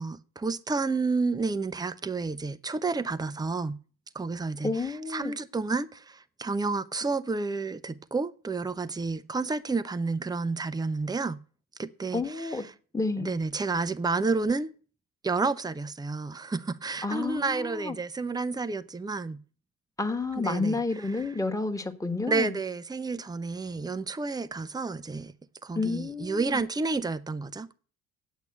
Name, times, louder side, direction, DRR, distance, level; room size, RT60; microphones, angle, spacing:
voice 1, 0.0-3.8 4.1-11.4 11.8-12.7 13.2-14.7 15.2-19.4 20.4-21.3 22.3-25.3 25.6-27.7, right 3 dB, 10° right, 0.8 m, -30 dB
voice 2, 4.6-5.3 12.1-12.6 12.9-13.3 17.0-17.9 20.0-22.5 25.7-26.6, left 3 dB, 10° left, 1.5 m, -30 dB
8.5 x 8.2 x 9.0 m
figure-of-eight pair, 50°, 42 cm